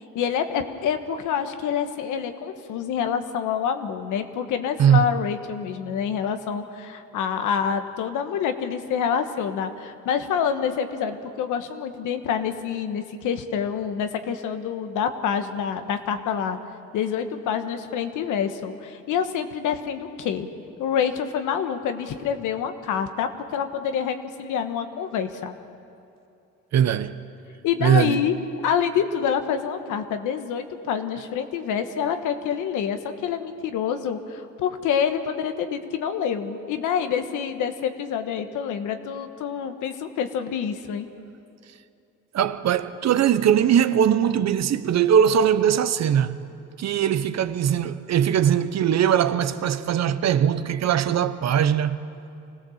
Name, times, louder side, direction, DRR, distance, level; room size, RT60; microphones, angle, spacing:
voice 1, 0.1-16.6 16.9-20.5 20.8-25.5 27.6-28.3 28.6-41.1, left 7 dB, 90° left, 1.3 m, -27 dB
voice 2, 26.7-27.1 27.8-28.2 42.3-46.4 46.8-52.0, right 9 dB, 60° right, 0.9 m, -20 dB
25.0 x 17.0 x 7.2 m
cardioid pair, 90°, 30 cm